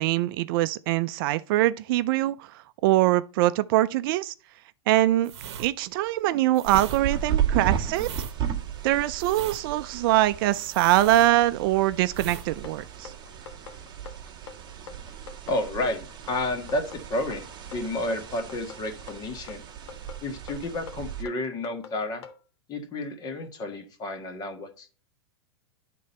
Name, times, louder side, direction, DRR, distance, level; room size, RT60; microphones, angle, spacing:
voice 1, 0.0-4.3 4.9-5.3 5.6-8.1 8.8-13.1, right 15 dB, 50° right, 0.4 m, -23 dB
sound 1, 5.2-11.8 12.1-12.5 12.8-13.0, right 8 dB, 75° right, 0.9 m, -40 dB
sound 2, 6.6-21.2, right 9 dB, 30° right, 1.4 m, -34 dB
sound 3, 12.6-22.4, left 6 dB, 65° left, 1.3 m, -45 dB
voice 2, 15.5-17.5 17.7-19.6 20.2-22.2 22.7-24.9, left 2 dB, 30° left, 1.6 m, -31 dB
11.0 x 3.8 x 4.2 m
hypercardioid pair, 135°, 14 cm